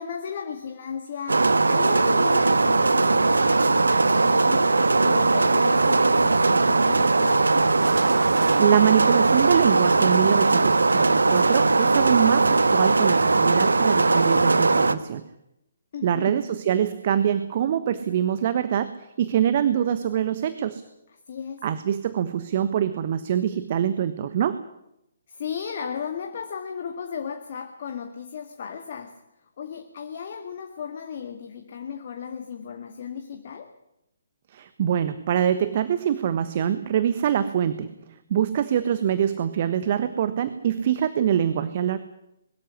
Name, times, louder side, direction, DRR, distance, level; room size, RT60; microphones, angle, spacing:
voice 1, 0.0-7.6 15.9-16.5 21.1-21.7 25.3-33.8, left 7 dB, 45° left, 1.9 m, -35 dB
sound 1, 1.3-14.9, right 3 dB, 75° right, 1.3 m, -19 dB
voice 2, 8.4-15.2 16.0-20.8 21.6-24.6 34.5-42.0, right 9 dB, 40° right, 1.3 m, -24 dB
22.0 x 13.5 x 9.9 m
figure-of-eight pair, 135°, 0 cm